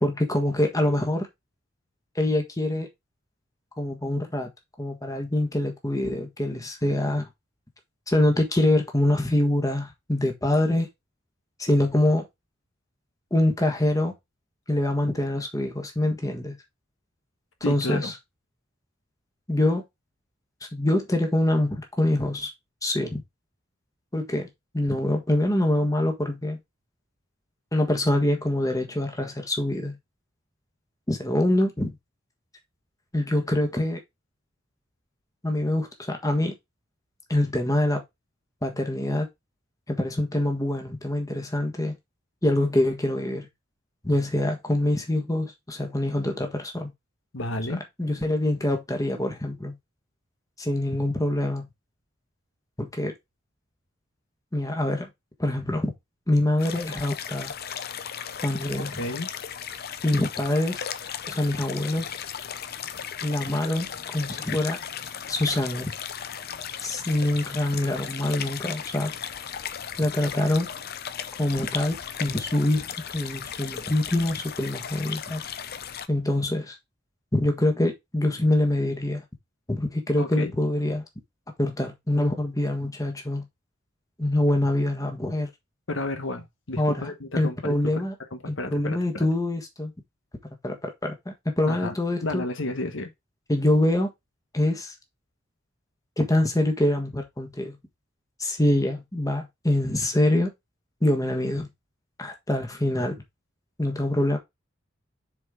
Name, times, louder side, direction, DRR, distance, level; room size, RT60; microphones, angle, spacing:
voice 1, 0.0-1.3 2.1-2.9 3.8-4.5 4.8-7.3 8.1-10.9 11.6-12.3 13.3-14.1 14.7-16.5 17.6-18.1 19.5-19.8 20.7-22.5 22.8-23.2 24.1-24.5 24.7-26.6 27.7-29.9 31.1-31.9 33.1-34.0 35.4-36.5 37.3-38.0 38.6-39.3 39.9-41.9 42.4-43.5 44.0-46.9 48.0-49.7 50.6-51.6 52.8-53.1 54.5-55.1 55.4-55.9 56.3-57.5 58.4-58.9 60.0-60.9 61.3-62.2 63.2-63.9 64.1-64.8 65.3-65.9 66.8-69.1 70.0-70.7 71.4-75.4 76.1-76.7 77.3-79.2 79.7-81.0 81.6-83.4 84.2-85.5 86.8-88.1 88.5-89.9 90.6-92.4 93.5-94.1 94.5-94.9 96.2-97.7 98.4-100.5 101.0-101.7 102.2-103.2 103.8-104.4, left 1 dB, 20° left, 1.5 m, -25 dB
voice 2, 17.6-18.1 47.3-47.8 58.8-59.3 80.2-80.5 85.9-88.0 88.3-89.3 91.7-91.9 92.2-93.1, left 2 dB, 70° left, 1.2 m, -32 dB
sound 1, 56.6-76.1, left 8 dB, 55° left, 0.6 m, -36 dB
7.2 x 4.5 x 3.6 m
head